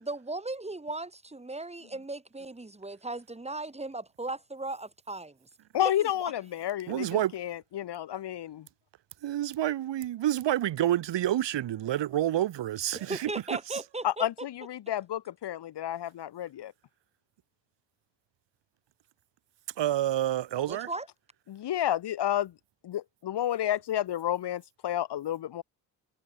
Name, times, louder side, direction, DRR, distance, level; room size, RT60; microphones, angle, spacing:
voice 1, 0.0-5.4 5.8-6.3 12.9-14.3 20.7-21.1, right 2 dB, 15° right, 2.6 m, -37 dB
voice 2, 5.7-8.7 14.0-16.7 21.5-22.5 22.8-25.6, left 11 dB, 55° left, 1.9 m, -31 dB
voice 3, 6.9-7.3 9.2-13.3 13.7-13.8 19.8-20.9, right 12 dB, 60° right, 2.4 m, -28 dB
hypercardioid pair, 60°, 48 cm